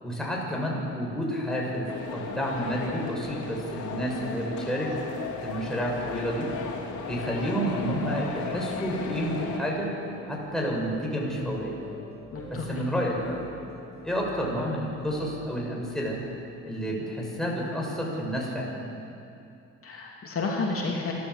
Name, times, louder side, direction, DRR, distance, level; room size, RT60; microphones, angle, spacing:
voice 1, 0.0-4.9 5.4-6.5 7.0-9.9 10.2-11.8 12.5-13.4 14.0-16.2 16.6-18.9, equal, ahead, -2 dB, 6.4 m, -30 dB
sound 1, 1.9-9.6, left 5 dB, 70° left, 3.4 m, -36 dB
sound 2, 5.1-17.3, equal, 20° right, 5.9 m, -47 dB
voice 2, 12.3-12.8 19.8-21.1, left 3 dB, 45° left, -2 dB, 3.1 m, -31 dB
28.0 x 12.5 x 8.5 m, 2.7 s
cardioid pair, 90°, 30 cm